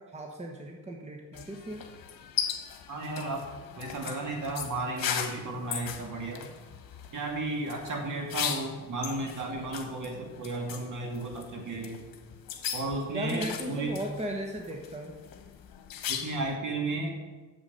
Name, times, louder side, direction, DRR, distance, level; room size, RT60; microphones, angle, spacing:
voice 1, 0.0-1.8 13.1-15.1, right 1 dB, 20° right, 1 dB, 1.2 m, -36 dB
sound 1, 1.3-16.5, left 8 dB, 65° left, 1.3 m, -38 dB
voice 2, 2.9-3.5 3.8-6.5 7.1-12.0 12.7-14.0 16.1-17.2, right 2 dB, 55° right, 1 dB, 2.5 m, -34 dB
9.5 x 7.3 x 5.5 m, 1.3 s
cardioid pair, 100°, 37 cm